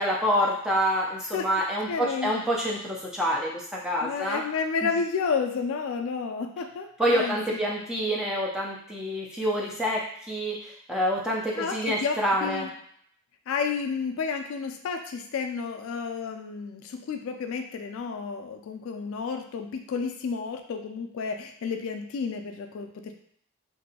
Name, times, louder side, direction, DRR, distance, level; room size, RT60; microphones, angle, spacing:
voice 1, 0.0-4.4 4.8-5.0 7.0-12.7, equal, 5° right, -4 dB, 0.4 m, -27 dB
voice 2, 1.9-2.3 4.0-7.6 11.5-12.7 13.5-23.1, left 5 dB, 65° left, 6 dB, 0.3 m, -31 dB
2.9 x 2.6 x 2.7 m, 0.65 s
head